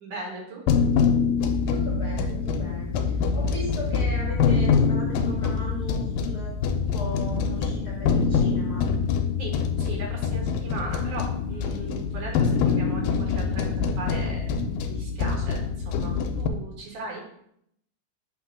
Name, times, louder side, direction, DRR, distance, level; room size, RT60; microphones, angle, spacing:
voice 1, 0.0-0.6 9.4-17.2, right 2 dB, 65° right, -2 dB, 2.9 m, -38 dB
sound 1, 0.7-16.5, left 5 dB, 85° left, 2.3 m, -25 dB
voice 2, 1.7-8.9, left 2 dB, 70° left, -4 dB, 0.9 m, -37 dB
8.4 x 2.9 x 4.9 m, 0.72 s
omnidirectional pair, 4.0 m